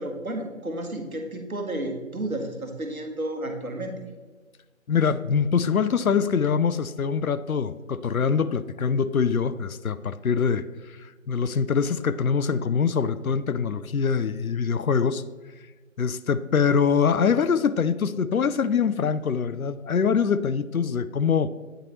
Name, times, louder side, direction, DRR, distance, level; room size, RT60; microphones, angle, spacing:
voice 1, 0.0-3.9, right 1 dB, 90° right, 4 dB, 1.3 m, -32 dB
voice 2, 4.9-11.0 11.3-15.2 16.0-21.5, left 6 dB, 85° left, 14 dB, 0.5 m, -24 dB
9.0 x 4.0 x 3.0 m, 1.3 s
figure-of-eight pair, 170°, 42 cm